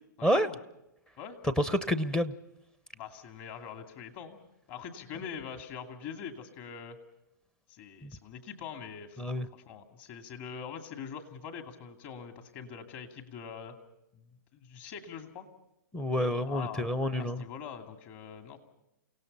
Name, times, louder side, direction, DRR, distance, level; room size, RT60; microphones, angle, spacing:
voice 1, 0.2-0.6 1.2-1.4 2.9-4.4 4.7-7.0 7.7-9.2 9.7-13.8 14.1-14.2 14.5-15.5 16.5-18.6, left 7 dB, 35° left, 5 dB, 2.6 m, -43 dB
voice 2, 1.4-2.3 8.0-8.1 9.2-9.5 15.9-17.4, equal, 5° left, 12 dB, 0.7 m, -28 dB
29.0 x 17.5 x 5.5 m, 0.87 s
hypercardioid pair, 140°, 11 cm